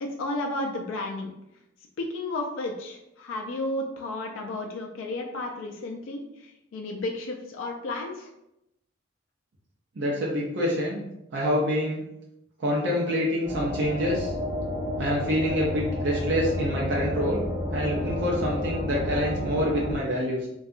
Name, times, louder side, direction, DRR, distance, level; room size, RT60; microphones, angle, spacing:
voice 1, 0.0-1.3 2.0-8.3, left 2 dB, 80° left, 1 dB, 0.3 m, -33 dB
voice 2, 10.0-11.0 11.3-12.0 12.6-14.3 15.0-17.4 17.7-20.5, equal, 60° right, -4 dB, 0.5 m, -26 dB
sound 1, 13.4-20.0, left 1 dB, 5° right, 0.8 m, -30 dB
2.7 x 2.3 x 2.4 m, 0.85 s
head